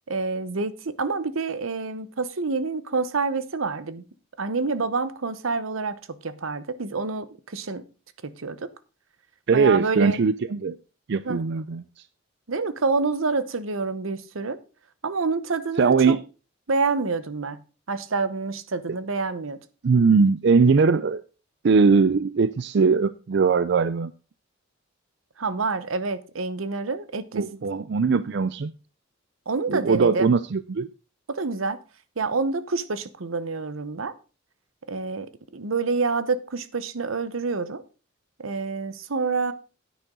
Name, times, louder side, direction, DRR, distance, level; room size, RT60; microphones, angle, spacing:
voice 1, 0.1-4.0 4.4-7.8 8.2-8.7 9.5-10.2 11.2-11.4 12.5-14.6 15.0-16.2 16.7-17.6 17.9-19.6 25.4-27.4 29.5-30.4 31.3-31.8 32.2-34.1 34.9-37.8 38.4-39.5, right 4 dB, 85° right, 0.9 m, -27 dB
voice 2, 9.5-10.8 11.1-11.8 15.8-16.2 19.8-21.2 21.6-24.1 27.3-28.7 29.7-30.9, right 5 dB, 60° right, 0.4 m, -20 dB
10.0 x 9.4 x 3.8 m
head